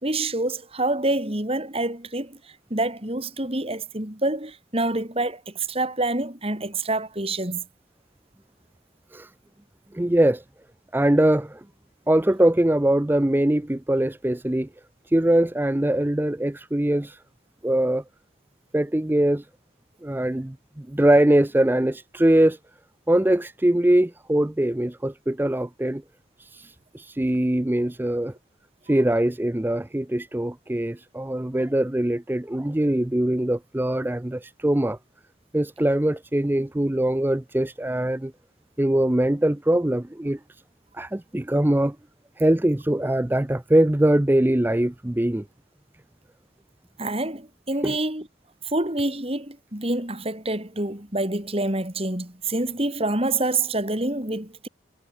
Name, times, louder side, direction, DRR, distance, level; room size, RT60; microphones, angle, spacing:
voice 1, 0.0-2.4 2.7-7.6 47.0-48.2 48.6-54.7, right 2 dB, 30° right, 3.5 m, -27 dB
voice 2, 9.9-10.4 10.9-11.6 12.1-14.7 15.1-17.2 17.6-18.0 18.7-19.5 20.0-22.6 23.1-26.0 26.4-28.3 28.9-35.0 35.5-38.3 38.8-40.6 40.9-42.0 42.4-45.4 47.8-48.0, right 1 dB, 10° right, 0.4 m, -22 dB
head